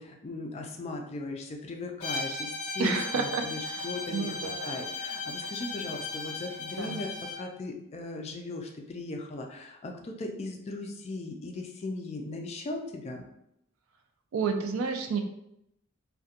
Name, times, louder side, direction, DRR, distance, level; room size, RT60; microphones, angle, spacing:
voice 1, 0.0-13.3, left 2 dB, 30° left, 3 dB, 0.3 m, -38 dB
Bowed string instrument, 2.0-7.5, left 3 dB, 90° left, 0.6 m, -36 dB
voice 2, 2.8-4.8 6.8-7.0 14.3-15.2, right 5 dB, 70° right, 6 dB, 0.3 m, -31 dB
2.4 x 2.1 x 2.7 m, 0.81 s
head